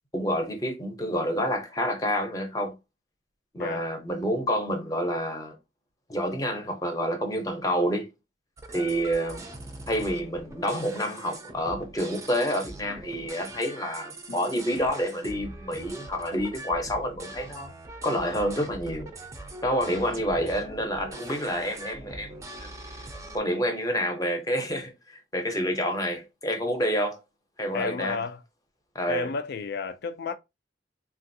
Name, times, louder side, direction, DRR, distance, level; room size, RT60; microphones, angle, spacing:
voice 1, 0.1-2.7 3.5-5.5 6.1-8.1 8.7-9.4 9.9-17.7 18.0-19.1 19.6-22.7 23.3-27.2 27.6-28.2 28.9-29.3, equal, 20° left, 0.7 m, -28 dB
sound 1, 8.6-23.4, right 2 dB, 15° right, 0.5 m, -42 dB
voice 2, 27.7-28.4 29.1-30.4, left 4 dB, 60° left, 0.4 m, -31 dB
3.3 x 2.4 x 2.6 m
head